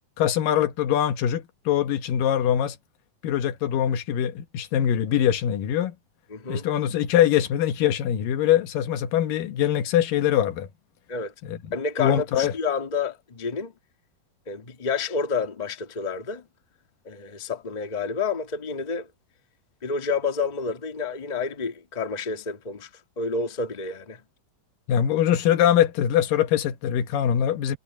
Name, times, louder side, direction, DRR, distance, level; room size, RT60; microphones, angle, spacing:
voice 1, 0.2-2.8 3.2-5.9 6.5-10.7 11.5-11.6 12.0-12.5 24.9-27.8, left 10 dB, 85° left, 3.0 m, -23 dB
voice 2, 6.3-6.7 11.1-11.3 11.7-13.7 14.5-16.4 17.0-19.1 19.8-22.9 23.2-24.2, left 4 dB, 20° left, 1.3 m, -29 dB
omnidirectional pair, 3.8 m